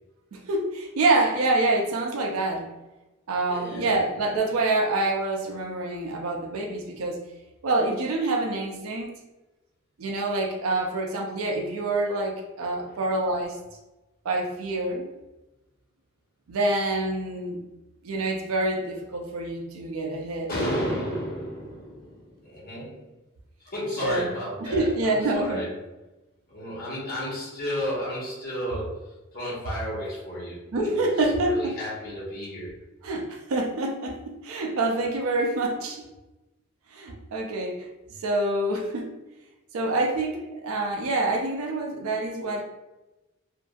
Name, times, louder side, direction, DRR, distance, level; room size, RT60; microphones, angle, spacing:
voice 1, 0.3-2.7 3.3-7.2 7.6-9.1 10.0-13.6 14.2-15.1 16.5-17.6 18.0-20.5 24.0-24.3 24.6-25.7 30.7-31.7 33.0-36.0 36.9-37.9 38.2-39.1 39.7-42.6, right 2 dB, 90° right, 1 dB, 0.4 m, -26 dB
voice 2, 3.5-4.0 12.8-13.0 20.5-23.1 23.6-25.8 26.5-32.7, equal, 45° left, -7 dB, 1.1 m, -33 dB
2.6 x 2.5 x 2.3 m, 1.0 s
head